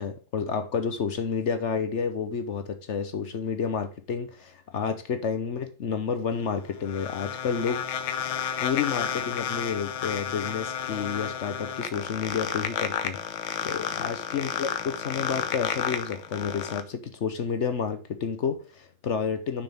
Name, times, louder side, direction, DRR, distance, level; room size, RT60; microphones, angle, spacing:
voice 1, 0.0-7.9 8.6-13.2 13.6-19.6, left 6 dB, 55° left, 0.8 m, -30 dB
sound 1, 6.3-16.8, left 9 dB, 80° left, 1.6 m, -32 dB
6.8 x 5.9 x 3.5 m
omnidirectional pair, 2.2 m